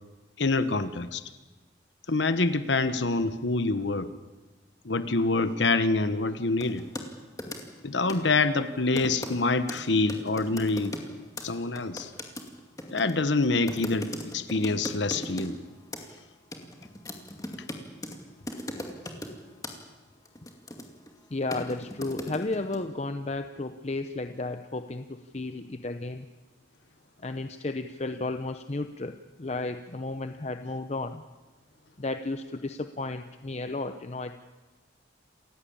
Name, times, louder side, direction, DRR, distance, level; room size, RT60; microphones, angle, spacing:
voice 1, 0.4-1.2 2.1-4.1 4.8-6.8 7.8-12.1 12.9-15.6, left 3 dB, 70° left, 12 dB, 1.1 m, -26 dB
sound 1, 6.6-7.1 7.4-7.8 8.1-8.3 9.0-9.4 9.7-9.8 10.1-11.1 11.4-11.5 11.8-15.5 15.9-16.2 16.5-18.2 18.5-19.4 19.6-19.8 20.3-21.1 21.5-22.8, left 1 dB, 20° left, 2.3 m, -38 dB
voice 2, 21.3-26.3 27.2-31.2 32.0-34.3, left 2 dB, 35° left, 8 dB, 0.7 m, -33 dB
28.0 x 15.5 x 8.7 m, 1.2 s
head